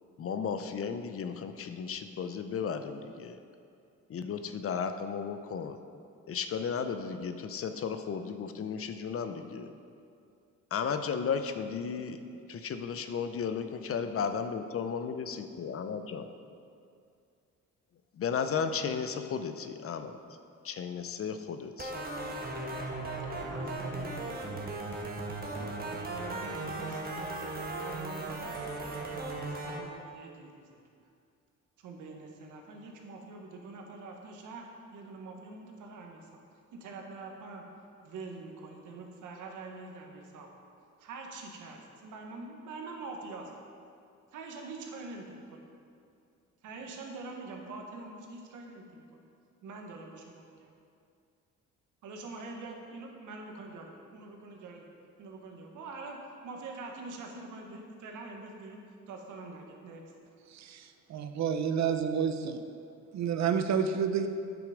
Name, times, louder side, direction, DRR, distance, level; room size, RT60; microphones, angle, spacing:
voice 1, 0.2-3.4 4.1-5.8 6.3-9.7 10.7-12.2 12.5-16.3 18.1-20.2 20.6-21.9, left 6 dB, 50° left, 9 dB, 0.6 m, -34 dB
sound 1, 21.8-29.8, right 2 dB, 30° right, 1.3 m, -37 dB
voice 2, 23.4-30.6 31.8-36.4 36.7-37.6 38.0-40.5 41.0-43.5 44.3-45.7 46.6-49.2 49.6-50.7 52.0-54.9 55.2-58.8 59.1-60.1, right 3 dB, 80° right, 1 dB, 1.3 m, -45 dB
voice 3, 60.5-60.8 61.1-62.6 63.1-64.3, right 7 dB, 65° right, 8 dB, 0.7 m, -29 dB
8.6 x 6.5 x 5.1 m, 2.4 s
cardioid pair, 90°, 30 cm